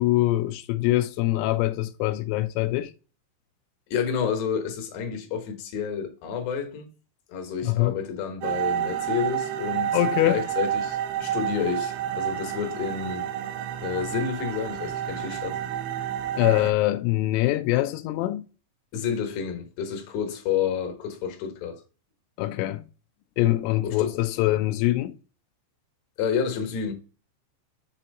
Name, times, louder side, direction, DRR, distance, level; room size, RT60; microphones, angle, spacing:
voice 1, 0.0-2.9 7.6-7.9 9.9-10.4 16.4-18.4 22.4-22.8 23.4-25.1, left 16 dB, 90° left, 2.5 m, -23 dB
voice 2, 3.9-6.9 7.3-10.0 10.2-13.3 13.8-15.6 18.9-21.8 23.8-24.1 26.2-26.9, left 7 dB, 70° left, 2.9 m, -29 dB
sound 1, 8.4-16.7, right 10 dB, 85° right, 2.5 m, -30 dB
7.1 x 2.8 x 5.2 m
omnidirectional pair, 5.7 m